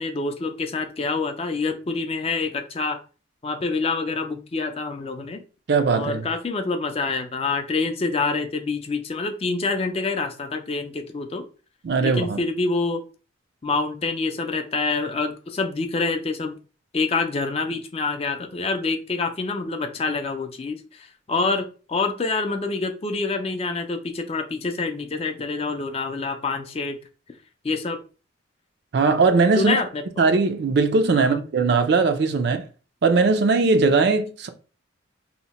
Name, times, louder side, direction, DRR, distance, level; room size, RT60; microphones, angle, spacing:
voice 1, 0.0-3.0 3.4-5.4 5.9-11.4 12.0-13.0 13.6-16.6 16.9-27.0 27.6-28.0 29.6-30.0 31.1-31.4, left 3 dB, 30° left, 0.4 m, -26 dB
voice 2, 5.7-6.2 11.8-12.4 28.9-29.8 30.2-32.6 33.0-34.5, right 4 dB, 55° right, 0.4 m, -19 dB
2.8 x 2.1 x 4.1 m
head